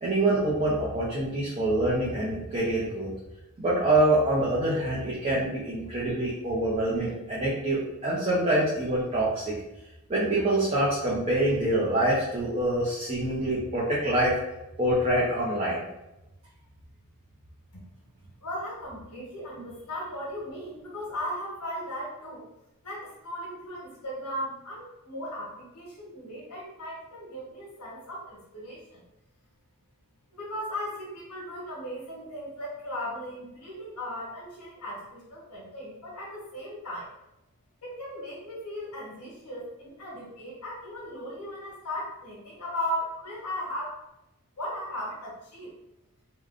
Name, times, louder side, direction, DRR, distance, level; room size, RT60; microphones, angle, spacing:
voice 1, 0.0-3.1 3.6-9.6 10.1-14.3 14.8-15.8, right 1 dB, 30° right, -7 dB, 0.6 m, -25 dB
voice 2, 18.4-22.4 22.8-29.0 30.3-37.1 37.8-44.0 44.6-45.7, equal, 85° left, -5 dB, 1.0 m, -37 dB
3.5 x 2.2 x 2.4 m, 0.92 s
head